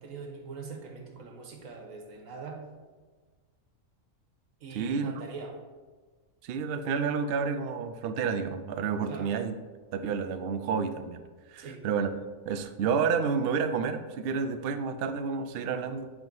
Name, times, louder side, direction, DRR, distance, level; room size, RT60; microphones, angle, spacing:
voice 1, 0.0-2.7 4.6-5.6 9.1-9.3 11.6-11.9, right 4 dB, 85° right, 3 dB, 1.4 m, -42 dB
voice 2, 4.7-5.1 6.4-9.6 9.9-11.2 11.5-12.1 12.5-16.1, right 6 dB, 60° right, 9 dB, 0.6 m, -30 dB
8.0 x 3.7 x 5.3 m, 1.4 s
omnidirectional pair, 1.4 m